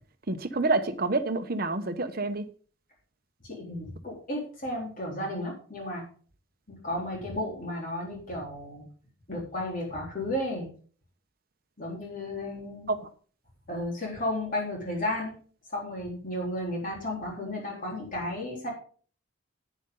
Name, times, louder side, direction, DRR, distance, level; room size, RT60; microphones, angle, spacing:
voice 1, 0.3-2.5 12.9-13.1, right 3 dB, 45° right, 9 dB, 1.0 m, -28 dB
voice 2, 3.4-6.0 6.7-8.8 9.3-10.7 11.8-12.9 13.7-15.3 15.7-18.7, left 1 dB, 40° left, -2 dB, 3.9 m, -33 dB
10.5 x 9.1 x 3.9 m, 0.43 s
head